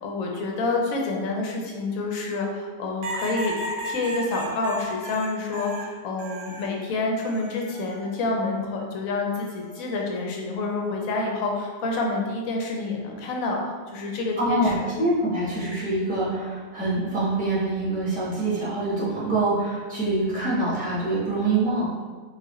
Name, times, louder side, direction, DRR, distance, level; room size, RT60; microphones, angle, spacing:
voice 1, 0.0-3.5 3.8-13.6 13.9-14.9, left 3 dB, 90° left, 0 dB, 1.1 m, -28 dB
sound 1, 3.0-6.7 7.2-8.0 9.4-9.8, right 1 dB, 70° right, 0.9 m, -35 dB
voice 2, 14.4-21.9, right 2 dB, 5° right, -8 dB, 0.8 m, -25 dB
4.0 x 2.4 x 2.9 m, 1.5 s
omnidirectional pair, 1.4 m